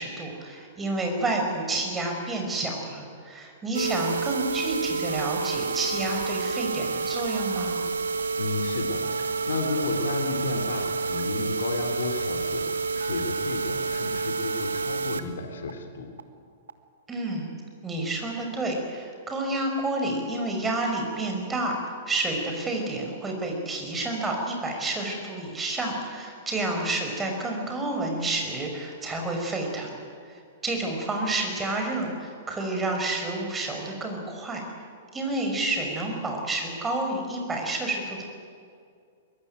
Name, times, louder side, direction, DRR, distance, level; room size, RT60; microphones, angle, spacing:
voice 1, 0.0-7.8 17.1-17.5 17.8-21.7 22.1-30.0 30.3-34.6 35.1-38.2, right 2 dB, 15° right, 2 dB, 5.8 m, -29 dB
sound 1, 3.7-15.2 15.7-15.8 16.2-16.3 16.7-16.8, right 4 dB, 70° right, 1.4 m, -29 dB
voice 2, 8.4-9.0 9.4-12.7 12.9-16.1, left 4 dB, 65° left, 5 dB, 3.1 m, -32 dB
23.0 x 22.0 x 9.3 m, 2.3 s
figure-of-eight pair, 105°, 0 cm